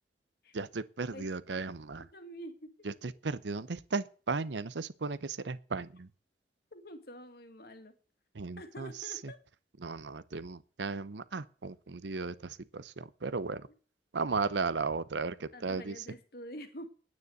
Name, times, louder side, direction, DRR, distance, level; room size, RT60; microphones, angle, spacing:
voice 1, 0.5-2.1 2.8-6.1 8.3-8.9 9.2-9.3 9.8-13.7 14.1-16.0, right 4 dB, 85° right, 0.8 m, -35 dB
voice 2, 2.1-2.7 3.0-3.1 6.7-7.9 8.6-9.4 15.5-16.9, equal, 60° left, 2.2 m, -47 dB
9.7 x 9.6 x 7.9 m
head